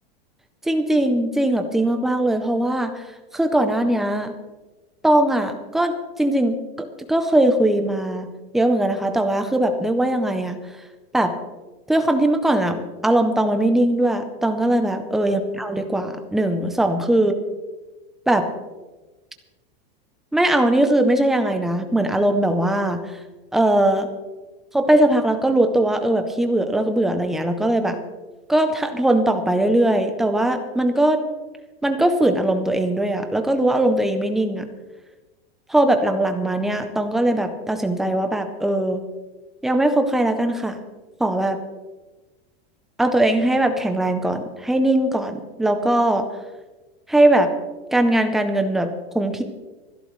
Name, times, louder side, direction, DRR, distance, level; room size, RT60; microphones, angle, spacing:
voice 1, 0.7-3.0 3.3-4.3 5.0-6.6 7.1-8.3 8.5-10.6 11.1-11.3 11.9-17.3 18.3-18.5 20.3-23.0 23.5-24.1 24.7-28.0 28.5-31.2 31.8-34.7 35.7-39.0 39.6-40.8 41.2-41.6 43.0-46.3 47.1-47.5 47.9-49.4, right 1 dB, ahead, 6 dB, 0.5 m, -20 dB
25.0 x 12.0 x 3.1 m, 1.2 s
supercardioid pair, 175°, 31 cm